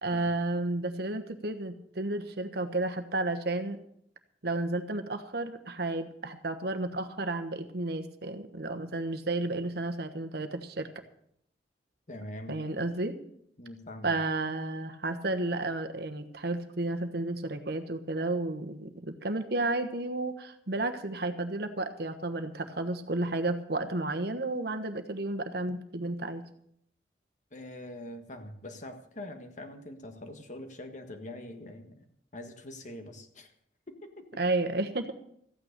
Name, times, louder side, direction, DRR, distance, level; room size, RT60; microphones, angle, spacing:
voice 1, 0.0-3.8 4.4-10.9 12.5-13.2 14.0-26.5 34.4-35.1, right 2 dB, 65° right, 8 dB, 1.2 m, -32 dB
voice 2, 12.1-12.6 13.6-14.1 27.5-32.0 32.3-33.5 33.9-34.4, left 1 dB, 45° left, 6 dB, 1.6 m, -44 dB
14.5 x 9.1 x 6.7 m, 0.69 s
head